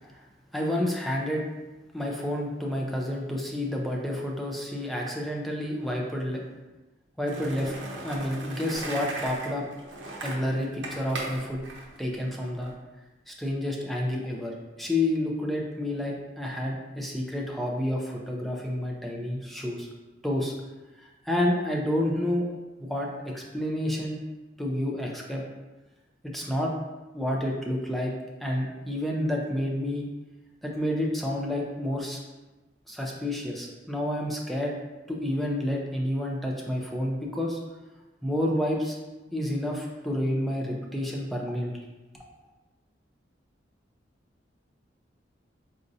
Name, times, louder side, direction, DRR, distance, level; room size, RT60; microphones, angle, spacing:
voice 1, 0.5-1.4 1.9-6.4 7.2-7.7 8.0-9.7 10.2-11.6 12.0-12.7 13.3-19.9 20.2-20.5 21.2-22.5 22.8-24.2 24.6-25.4 26.2-26.7 27.1-28.1 28.4-30.1 30.6-32.2 32.9-34.7 35.1-37.6 38.2-39.0 39.3-41.7, left 1 dB, ahead, -2 dB, 0.4 m, -29 dB
Skateboard, 7.3-12.7, right 2 dB, 75° right, 0.6 m, -38 dB
4.1 x 2.5 x 2.6 m, 1.1 s
head